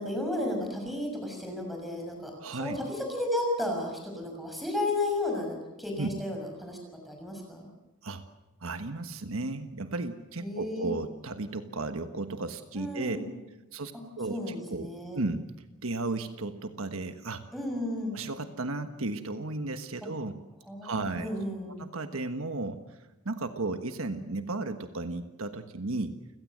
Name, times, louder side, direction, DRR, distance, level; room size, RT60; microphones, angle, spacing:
voice 1, 0.0-6.8 7.1-7.7 10.4-10.9 12.7-13.3 14.3-15.2 17.5-18.2 20.7-21.8, left 1 dB, ahead, 1 dB, 6.4 m, -33 dB
voice 2, 2.4-2.8 6.0-6.1 8.0-8.2 8.6-13.2 13.7-13.9 14.2-15.4 15.8-17.4 18.1-20.4 20.8-21.3 21.8-22.8 23.2-26.2, right 2 dB, 75° right, 8 dB, 1.4 m, -34 dB
29.0 x 17.0 x 7.8 m, 1.0 s
head